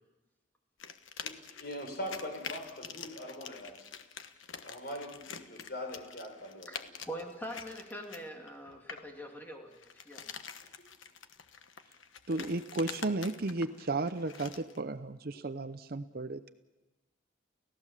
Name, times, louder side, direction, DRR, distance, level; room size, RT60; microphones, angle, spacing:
sound 1, 0.8-9.1 9.7-14.8, left 7 dB, 85° left, 1.2 m, -46 dB
voice 1, 1.2-3.8 4.6-6.9 12.3-12.5 13.1-13.2 15.3-15.4, left 1 dB, 55° left, 3 dB, 5.2 m, -42 dB
voice 2, 7.1-10.2, equal, 10° left, 2 dB, 2.6 m, -43 dB
voice 3, 12.3-16.5, right 2 dB, 50° right, 11 dB, 0.7 m, -34 dB
29.5 x 16.0 x 7.4 m, 1.1 s
head